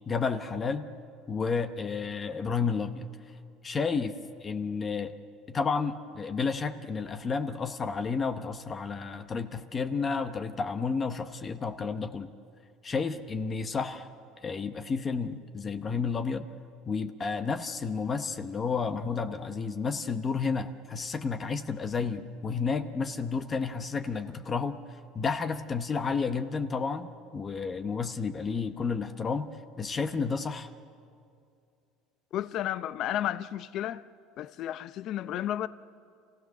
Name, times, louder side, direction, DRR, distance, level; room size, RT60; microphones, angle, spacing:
voice 1, 0.1-0.9 1.3-3.1 3.6-4.1 4.4-5.1 5.5-12.3 12.8-14.1 14.4-16.4 16.9-24.8 25.1-29.5 29.8-30.7, left 5 dB, 25° left, 0.9 m, -31 dB
voice 2, 32.3-34.0 34.4-35.7, left 12 dB, 50° left, 0.6 m, -32 dB
28.5 x 16.0 x 6.5 m
cardioid pair, 140°, 0 cm